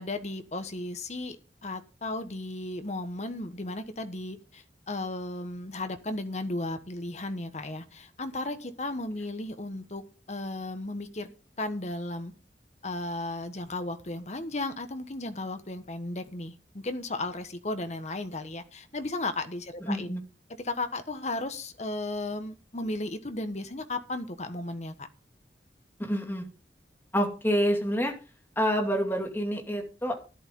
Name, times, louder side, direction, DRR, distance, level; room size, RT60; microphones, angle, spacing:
voice 1, 0.0-1.4 1.6-10.0 10.3-11.3 11.6-12.3 12.8-20.2 20.6-25.1, left 2 dB, 40° left, 9 dB, 1.3 m, -35 dB
voice 2, 19.8-20.2 26.0-26.5 27.1-28.1 28.6-30.2, equal, 10° left, 2 dB, 2.5 m, -27 dB
12.5 x 11.0 x 3.7 m, 0.33 s
head